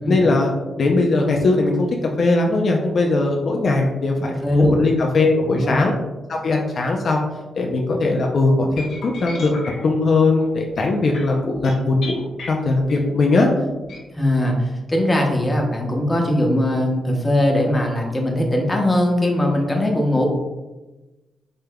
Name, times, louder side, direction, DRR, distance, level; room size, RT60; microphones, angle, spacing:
voice 1, 0.1-0.5 0.8-1.9 2.2-5.9 6.3-7.2 7.6-13.5, left 3 dB, 60° left, 1 dB, 0.5 m, -19 dB
voice 2, 4.4-4.8 5.4-5.8 14.1-20.3, left 1 dB, 15° left, 0 dB, 0.9 m, -20 dB
sound 1, 8.8-13.3 13.8-14.0, left 3 dB, 80° left, 1.0 m, -37 dB
5.1 x 3.4 x 2.2 m, 1.1 s
cardioid pair, 85°, 0 cm